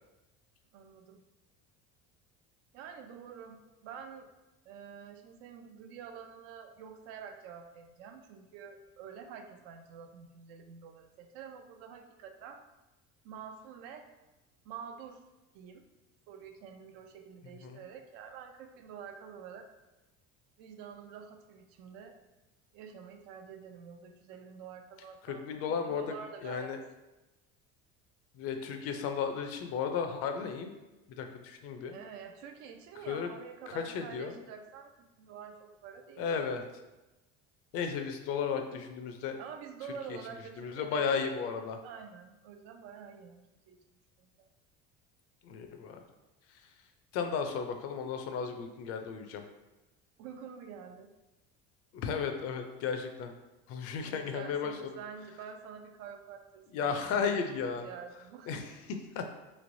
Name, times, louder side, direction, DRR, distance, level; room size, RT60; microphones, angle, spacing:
voice 1, 0.7-1.2 2.7-4.3 4.7-12.6 13.2-14.1 14.6-15.2 15.5-15.9 16.3-19.8 20.6-22.2 22.7-26.8 31.9-36.5 39.4-43.8 44.2-44.5 50.2-51.1 54.1-57.4 57.8-58.8 59.2-59.3, right 7 dB, 85° right, 6 dB, 0.5 m, -48 dB
voice 2, 25.2-26.1 26.4-26.8 28.3-30.7 31.1-32.0 33.1-33.3 33.7-34.4 36.2-36.6 37.7-39.4 40.1-40.2 40.6-41.8 45.4-46.0 46.5-46.6 47.1-49.4 51.9-53.3 53.7-54.9 56.7-57.9 58.5-58.8 59.2-59.3, left 6 dB, 55° left, 6 dB, 0.4 m, -34 dB
3.1 x 2.9 x 2.6 m, 1.0 s
cardioid pair, 135°, 29 cm